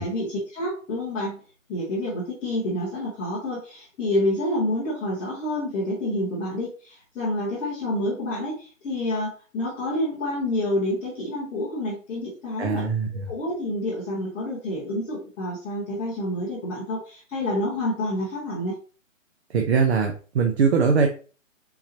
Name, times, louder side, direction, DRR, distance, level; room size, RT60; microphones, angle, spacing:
voice 1, 0.0-1.4 1.7-12.8 13.3-18.7, left 1 dB, 5° left, -9 dB, 0.7 m, -28 dB
voice 2, 12.6-13.3 19.5-21.1, right 5 dB, 55° right, 3 dB, 0.8 m, -22 dB
4.2 x 3.8 x 2.8 m, 0.37 s
hypercardioid pair, 150°, 39 cm